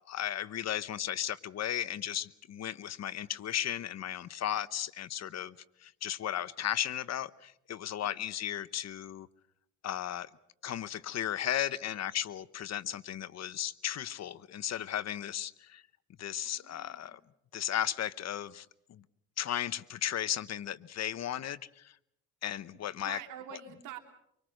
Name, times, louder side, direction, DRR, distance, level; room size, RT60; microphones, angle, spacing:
voice 1, 0.0-9.3 9.8-10.3 10.6-15.8 16.2-17.2 17.5-19.0 19.4-22.0 22.4-23.2, left 11 dB, 60° left, 1.0 m, -35 dB
voice 2, 8.0-8.3 16.4-17.2 22.7-24.0, right 9 dB, 85° right, 3.2 m, -47 dB
25.0 x 24.0 x 6.5 m
cardioid pair, 90°, 30 cm